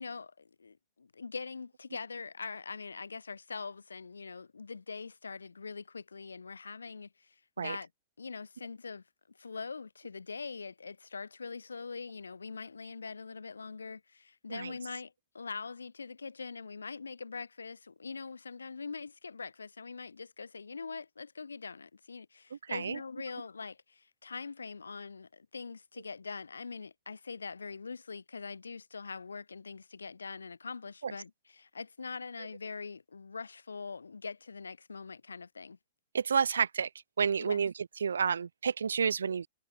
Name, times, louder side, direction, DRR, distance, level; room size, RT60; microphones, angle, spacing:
voice 1, 0.0-7.9 8.2-9.0 9.4-35.8 37.4-37.6, left 4 dB, 80° left, 4.0 m, -43 dB
voice 2, 22.7-23.0 31.0-31.1 36.1-36.9 37.2-37.7 38.0-39.5, right 6 dB, 75° right, 0.8 m, -30 dB
figure-of-eight pair, 105°, 0 cm